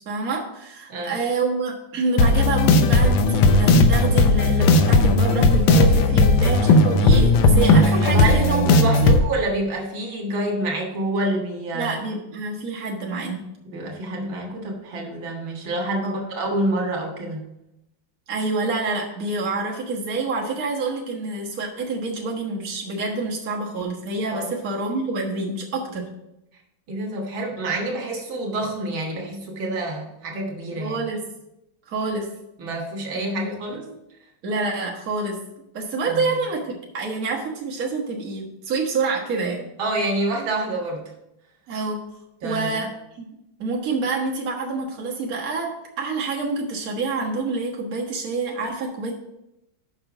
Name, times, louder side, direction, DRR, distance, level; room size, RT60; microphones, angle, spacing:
voice 1, 0.0-8.7 9.0-9.2 11.7-13.4 16.0-16.2 18.3-26.1 30.8-31.2 31.9-32.3 33.2-33.5 34.4-35.4 35.7-39.6 41.7-42.0 42.4-42.9 43.2-43.3 43.6-49.1, right 3 dB, 50° right, -3 dB, 1.8 m, -27 dB
sound 1, 2.2-9.2, left 2 dB, 80° left, 1.5 m, -16 dB
voice 2, 8.0-12.0 13.7-17.5 24.3-24.5 26.9-31.0 32.6-33.9 36.1-36.4 39.8-41.1 42.4-42.8, right 2 dB, 85° right, 0 dB, 2.4 m, -27 dB
6.9 x 5.6 x 6.0 m, 0.86 s
omnidirectional pair, 2.1 m